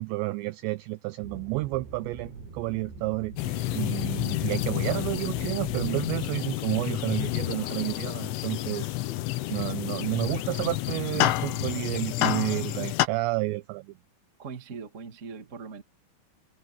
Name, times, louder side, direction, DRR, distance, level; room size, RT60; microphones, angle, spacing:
voice 1, 0.0-8.9 9.5-13.9, right 22 dB, 90° right, 2.5 m, -31 dB
sound 1, 1.2-6.3, right 3 dB, 60° right, 7.7 m, -43 dB
sound 2, 3.4-13.1, left 16 dB, 80° left, 3.6 m, -29 dB
voice 2, 14.4-15.8, right 5 dB, 35° right, 1.1 m, -40 dB
omnidirectional pair, 5.7 m